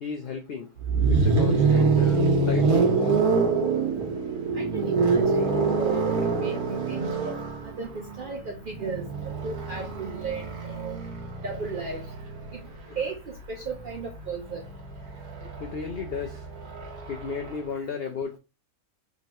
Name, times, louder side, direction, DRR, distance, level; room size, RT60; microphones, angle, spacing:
voice 1, 0.0-0.7 1.1-3.4 12.9-13.0 15.4-16.4 17.1-18.4, left 5 dB, 75° left, 0.5 m, -34 dB
sound 1, 0.8-12.7 14.0-17.6, right 4 dB, 85° right, 1.5 m, -25 dB
voice 2, 4.5-7.4 7.6-11.0 11.4-12.0 13.0-14.6, right 4 dB, 60° right, 0.5 m, -35 dB
3.7 x 3.1 x 2.6 m
omnidirectional pair, 1.5 m